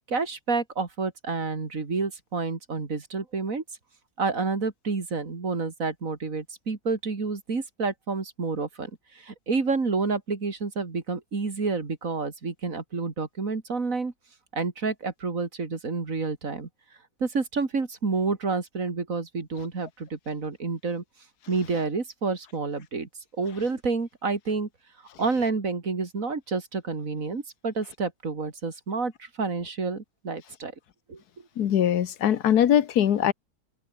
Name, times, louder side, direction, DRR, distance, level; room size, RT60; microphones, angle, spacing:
voice 1, 0.1-3.6 4.2-14.1 14.5-16.7 17.2-21.0 21.5-23.1 23.4-24.7 25.2-30.7 31.1-31.2, right 4 dB, 60° right, 3.0 m, -29 dB
voice 2, 31.6-33.3, left 10 dB, 90° left, 1.6 m, -21 dB
omnidirectional pair, 1.6 m